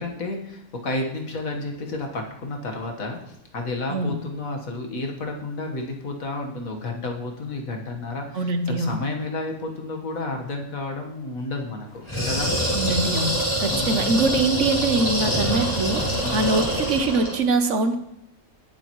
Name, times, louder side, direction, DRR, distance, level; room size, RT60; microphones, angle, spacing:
voice 1, 0.0-12.5 13.7-14.1 16.2-16.5, left 2 dB, 75° left, 2 dB, 1.9 m, -31 dB
voice 2, 8.3-9.0 12.7-13.3 13.6-16.0 16.3-18.0, right 3 dB, 65° right, 8 dB, 1.2 m, -23 dB
sound 1, 12.0-17.4, equal, 20° left, 3.3 m, -25 dB
18.5 x 7.4 x 3.1 m, 0.79 s
omnidirectional pair, 1.4 m